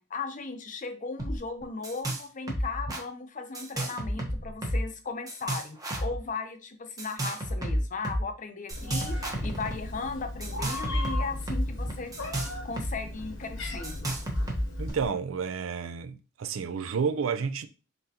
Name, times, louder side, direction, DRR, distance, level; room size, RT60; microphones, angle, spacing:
voice 1, 0.0-12.1 12.6-14.1, left 4 dB, 40° left, 0.6 m, -37 dB
sound 1, 1.2-1.4 1.6-2.2 2.5-3.0 3.5-4.9 5.3-6.2 7.0-8.2 8.7-9.8 10.4-12.9 13.2-13.3 13.8-14.9, equal, 20° right, 0.8 m, -31 dB
Meow, 8.7-15.1, left 2 dB, 75° left, 1.1 m, -38 dB
voice 2, 14.8-17.7, right 6 dB, 80° right, 0.4 m, -30 dB
4.0 x 3.8 x 2.8 m
head